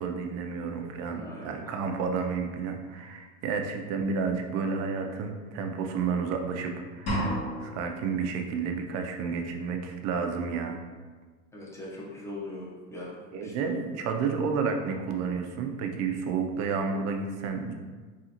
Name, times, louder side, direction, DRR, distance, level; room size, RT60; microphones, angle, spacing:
voice 1, 0.0-10.8 13.3-17.7, right 5 dB, 45° right, 4 dB, 0.5 m, -31 dB
voice 2, 1.1-1.6 11.5-13.5, left 1 dB, 5° left, -5 dB, 0.7 m, -41 dB
sound 1, 7.1-8.0, equal, 45° left, 1.4 m, -30 dB
3.7 x 2.4 x 2.8 m, 1.4 s
supercardioid pair, 115°, 37 cm